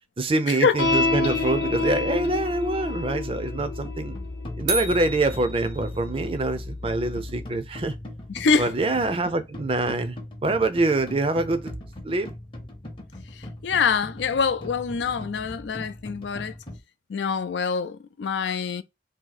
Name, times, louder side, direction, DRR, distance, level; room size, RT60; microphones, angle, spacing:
voice 1, 0.2-4.1 4.6-7.9 8.6-10.2 10.4-11.7 12.0-12.3, right 2 dB, 30° right, 0.5 m, -25 dB
sound 1, 0.8-7.4, left 3 dB, 65° left, 0.9 m, -29 dB
sound 2, 3.6-16.8, left 1 dB, 30° left, 0.7 m, -40 dB
sound 3, 4.7-6.3, right 2 dB, 85° right, 1.1 m, -32 dB
voice 2, 8.3-8.7 13.3-16.5 17.1-18.8, left 5 dB, 85° left, 0.4 m, -25 dB
2.8 x 2.7 x 3.9 m
head